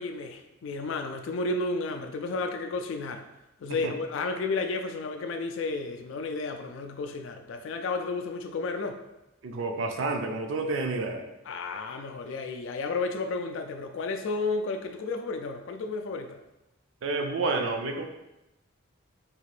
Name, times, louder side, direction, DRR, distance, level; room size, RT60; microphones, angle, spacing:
voice 1, 0.0-3.2 3.6-9.0 11.5-16.4, left 3 dB, 70° left, 6 dB, 0.3 m, -32 dB
voice 2, 9.4-11.2 17.0-18.1, right 3 dB, 70° right, 4 dB, 0.4 m, -29 dB
3.6 x 2.4 x 3.2 m, 0.96 s
head